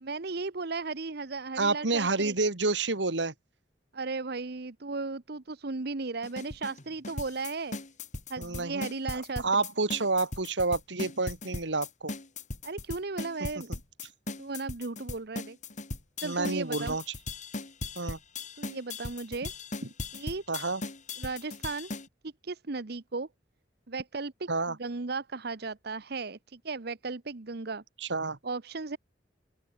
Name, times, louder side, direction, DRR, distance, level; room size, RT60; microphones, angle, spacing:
voice 1, 0.0-2.3 3.9-7.8 8.3-9.6 12.6-13.8 14.4-15.6 16.2-17.0 18.6-19.5 20.1-20.4 21.2-21.9 22.2-23.3 23.9-27.8 28.4-29.0, right 3 dB, 60° right, 1.0 m, -36 dB
voice 2, 1.6-3.3 8.4-8.9 9.1-12.1 16.2-17.0 18.0-18.2 20.5-20.8 24.5-24.8 28.0-28.4, right 3 dB, 85° right, 2.2 m, -29 dB
sound 1, 6.2-22.1, left 2 dB, 45° left, 3.3 m, -38 dB
open air
head